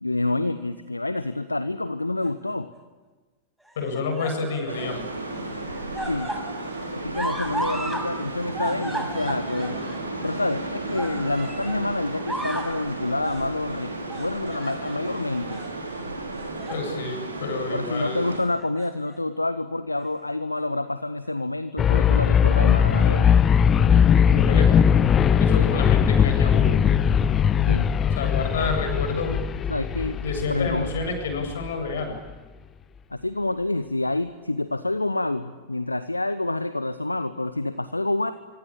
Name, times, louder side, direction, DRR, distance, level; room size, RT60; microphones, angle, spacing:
voice 1, 0.0-2.7 6.1-6.3 6.9-9.8 10.2-15.6 17.7-23.3 27.7-27.9 29.7-30.2 30.5-30.9 33.1-38.3, left 2 dB, 85° left, 12 dB, 1.0 m, -28 dB
sound 1, 2.2-2.8 3.7-5.0 5.3-8.1 8.3-11.8 12.1-12.8 13.2-13.5 14.1-15.1 15.5-15.7 16.4-16.9 17.2-17.4 18.5-19.2 20.0-20.1, right 1 dB, 5° right, 6.3 m, -35 dB
voice 2, 3.8-5.1 16.7-18.2 24.3-26.9 28.2-29.4 30.2-32.2, left 3 dB, 60° left, 5 dB, 7.9 m, -29 dB
sound 2, 4.7-18.4, right 2 dB, 80° right, 4.9 m, -33 dB
sound 3, 21.8-31.7, left 8 dB, 25° left, 1.1 m, -19 dB
25.5 x 25.5 x 8.8 m, 1.3 s
figure-of-eight pair, 90°, 0 cm